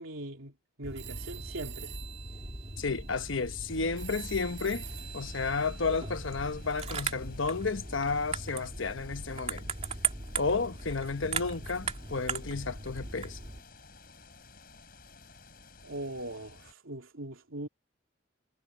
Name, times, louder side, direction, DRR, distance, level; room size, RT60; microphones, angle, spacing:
voice 1, 0.0-1.9 15.8-17.7, right 1 dB, 80° right, 3.0 m, -40 dB
sound 1, 0.8-13.6, right 4 dB, 30° right, 2.9 m, -39 dB
sound 2, 1.0-7.1, right 13 dB, 65° right, 4.2 m, -48 dB
voice 2, 2.8-4.8 5.1-9.7 10.4-13.4, left 4 dB, 70° left, 1.1 m, -32 dB
sound 3, 3.7-16.7, left 3 dB, 45° left, 5.6 m, -53 dB
head